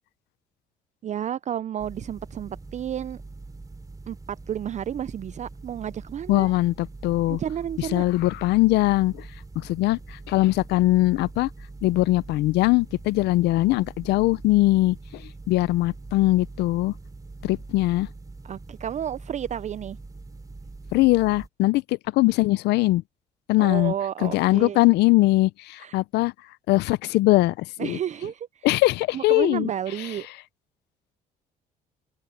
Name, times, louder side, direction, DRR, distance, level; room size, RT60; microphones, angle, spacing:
voice 1, 1.0-3.2 4.1-6.5 7.3-8.0 18.4-20.0 23.6-24.8 25.8-26.0 27.8-28.7 29.1-30.3, right 10 dB, 45° right, 0.4 m, -31 dB
sound 1, 1.8-21.5, right 3 dB, 20° right, 3.2 m, -43 dB
voice 2, 6.3-7.4 7.8-9.3 9.6-11.5 11.8-16.9 17.4-18.1 20.9-23.0 23.5-23.9 24.2-26.3 26.7-28.0 28.6-29.7 30.0-30.1, left 18 dB, 80° left, 0.6 m, -21 dB
open air
supercardioid pair, 75°, 17 cm